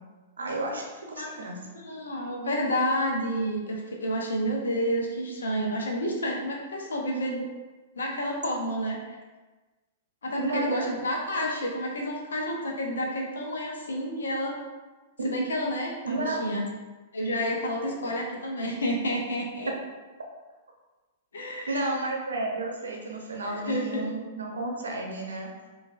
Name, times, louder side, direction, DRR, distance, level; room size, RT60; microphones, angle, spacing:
voice 1, 0.4-1.6 10.4-10.9 11.3-11.4 15.2-15.3 16.0-16.4 21.7-25.5, right 2 dB, 70° right, 0 dB, 0.7 m, -32 dB
voice 2, 1.7-7.5 8.0-9.2 10.2-14.6 15.2-16.6 17.1-19.7 21.3-21.9 23.5-24.0, equal, 65° left, 0 dB, 0.7 m, -30 dB
5.3 x 2.5 x 2.5 m, 1.2 s
figure-of-eight pair, 100°, 0 cm